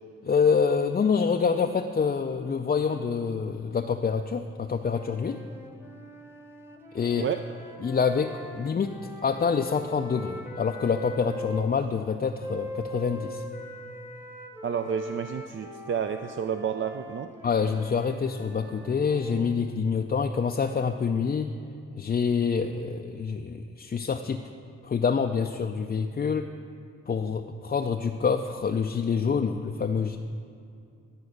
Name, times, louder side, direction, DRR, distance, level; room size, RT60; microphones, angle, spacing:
voice 1, 0.2-5.4 6.9-7.3 7.8-13.4 17.4-21.5 22.0-24.4 24.8-26.5 27.1-30.2, left 6 dB, 30° left, 4 dB, 0.4 m, -26 dB
sound 1, 4.7-11.7 12.4-19.6, equal, 10° right, 1.0 m, -42 dB
voice 2, 14.6-17.3, right 7 dB, 40° right, 8 dB, 0.4 m, -30 dB
11.5 x 4.3 x 6.5 m, 2.5 s
supercardioid pair, 45°, 31 cm